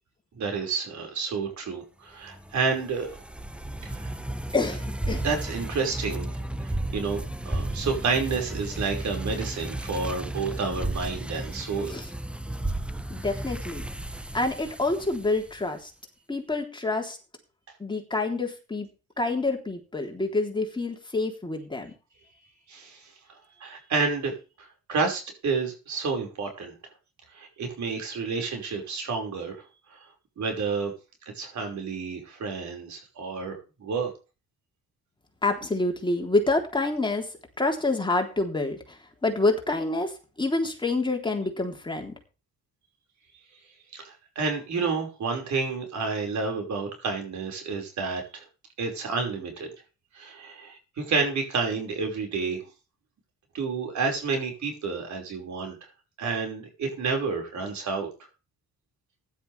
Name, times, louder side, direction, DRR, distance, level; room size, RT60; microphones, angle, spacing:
voice 1, 0.4-3.2 3.8-4.1 5.2-11.9 22.7-23.1 23.6-26.7 27.3-29.6 29.9-30.0 30.4-30.9 31.2-34.1 43.9-48.4 48.8-49.7 50.1-52.6 53.5-55.8 56.2-58.1, right 4 dB, 65° right, 3 dB, 5.5 m, -30 dB
sound 1, 2.3-15.7, right 1 dB, 5° right, 0.9 m, -34 dB
voice 2, 4.5-5.2 11.9-12.1 13.1-13.9 14.3-15.9 16.3-17.2 17.8-18.9 19.2-21.9 35.4-42.1, left 2 dB, 15° left, 2 dB, 3.6 m, -27 dB
15.5 x 11.5 x 3.5 m, 0.33 s
cardioid pair, 90°, 30 cm